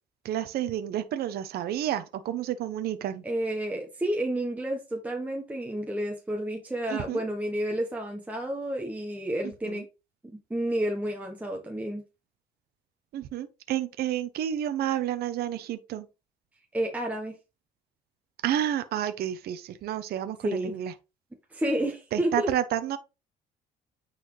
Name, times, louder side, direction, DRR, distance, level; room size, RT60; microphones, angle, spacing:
voice 1, 0.2-3.2 6.9-7.2 9.6-9.8 13.1-16.1 18.4-20.9 22.1-23.0, right 11 dB, 65° right, 0.8 m, -30 dB
voice 2, 3.2-9.8 10.5-12.0 16.7-17.4 20.4-20.8 21.5-22.5, right 1 dB, 10° right, 1.2 m, -30 dB
9.1 x 4.2 x 3.3 m
cardioid pair, 110°, 17 cm